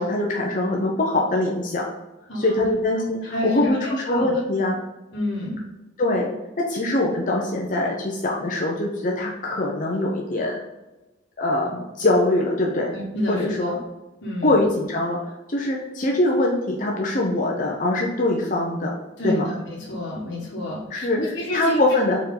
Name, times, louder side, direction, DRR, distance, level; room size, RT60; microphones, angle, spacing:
voice 1, 0.0-1.9 2.3-4.7 6.0-6.3 6.7-10.6 11.4-12.9 13.3-13.7 14.4-15.2 15.5-19.0 19.2-19.5 20.9-22.2, left 2 dB, 40° left, -1 dB, 0.8 m, -23 dB
voice 2, 2.3-2.6 3.2-4.3 5.1-5.7 12.9-13.8 14.2-14.6 19.2-21.8, left 1 dB, 65° left, -5 dB, 1.6 m, -29 dB
6.1 x 4.4 x 3.9 m, 1.1 s
head